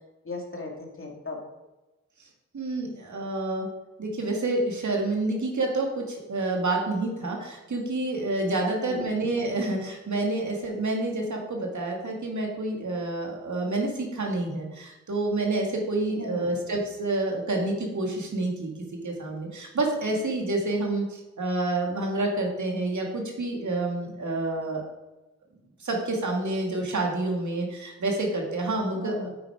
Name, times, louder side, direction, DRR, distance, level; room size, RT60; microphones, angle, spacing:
voice 1, 0.2-1.5 8.6-9.1 16.1-16.5 28.9-29.3, left 2 dB, 45° left, 0 dB, 2.6 m, -37 dB
voice 2, 2.5-3.7 4.0-24.9 25.8-29.3, right 2 dB, 75° right, 0 dB, 2.4 m, -28 dB
9.2 x 8.3 x 5.0 m, 1.1 s
cardioid pair, 55°, 29 cm